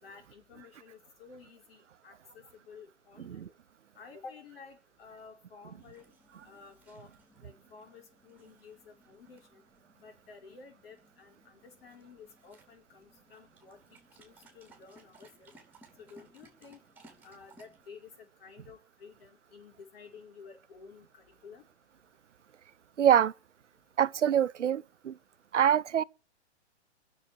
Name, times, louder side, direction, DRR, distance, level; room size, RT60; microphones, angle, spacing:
voice 1, 0.0-3.5 4.0-6.1 6.4-7.1 7.4-9.6 10.0-15.5 16.0-16.8 17.2-21.6, left 5 dB, 55° left, 5.2 m, -52 dB
sound 1, 5.8-17.9, right 2 dB, 5° right, 4.7 m, -62 dB
voice 2, 23.0-23.3 24.0-25.1 25.5-26.0, right 9 dB, 85° right, 0.7 m, -25 dB
22.0 x 7.3 x 8.7 m
hypercardioid pair, 135°, 35 cm